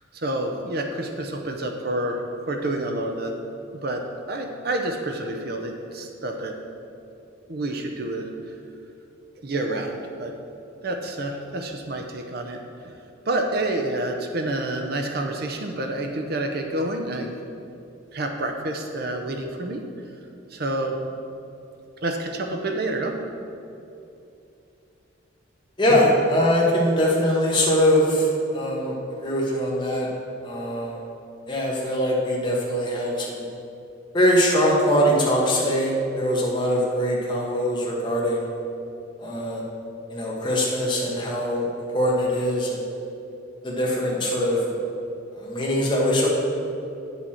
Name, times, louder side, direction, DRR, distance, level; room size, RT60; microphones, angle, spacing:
voice 1, 0.1-2.2 2.5-3.3 3.7-4.0 4.3-6.5 7.5-8.3 9.4-10.3 10.8-12.9 13.2-17.3 18.1-19.8 20.5-21.0 22.0-23.1, right 1 dB, 50° right, 3 dB, 0.7 m, -28 dB
voice 2, 25.8-30.1 30.4-31.0 31.5-33.4 34.1-38.5 39.2-39.6 40.1-41.7 41.9-42.9 43.6-44.8 45.4-46.3, equal, 25° left, -3 dB, 1.4 m, -22 dB
9.3 x 7.0 x 4.4 m, 2.7 s
head